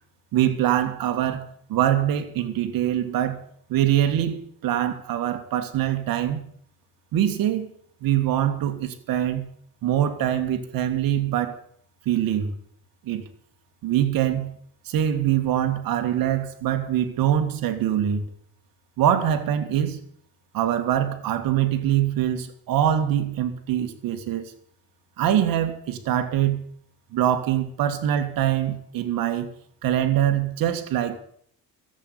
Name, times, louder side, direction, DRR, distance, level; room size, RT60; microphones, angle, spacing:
voice 1, 0.3-3.4 3.7-6.4 7.1-7.7 8.0-9.5 9.8-11.6 12.1-12.5 13.0-13.3 13.8-14.5 14.9-18.3 19.0-20.0 20.5-24.5 25.2-26.6 27.1-29.5 29.8-31.2, right 11 dB, 70° right, 2.1 m, -23 dB
13.5 x 8.3 x 9.6 m
cardioid pair, 115°, 35 cm